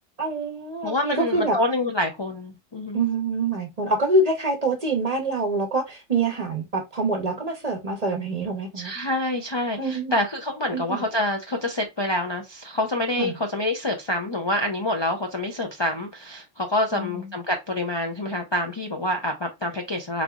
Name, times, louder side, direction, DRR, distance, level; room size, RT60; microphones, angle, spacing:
voice 1, 0.2-1.6 2.9-8.9 9.8-10.1 10.7-11.0 13.2-13.4 16.9-17.4, right 2 dB, 40° right, 0.7 m, -25 dB
voice 2, 0.8-3.0 8.8-20.2, left 1 dB, 35° left, 0.4 m, -27 dB
3.7 x 3.3 x 2.3 m
omnidirectional pair, 1.3 m